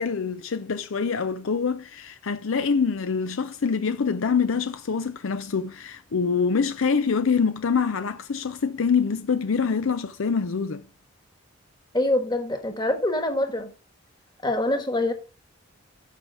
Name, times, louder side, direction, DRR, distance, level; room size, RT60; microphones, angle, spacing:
voice 1, 0.0-10.9, left 5 dB, 65° left, 0.5 m, -25 dB
voice 2, 11.9-13.7 14.4-15.1, left 1 dB, 20° left, 1.5 m, -25 dB
9.1 x 6.3 x 4.6 m
head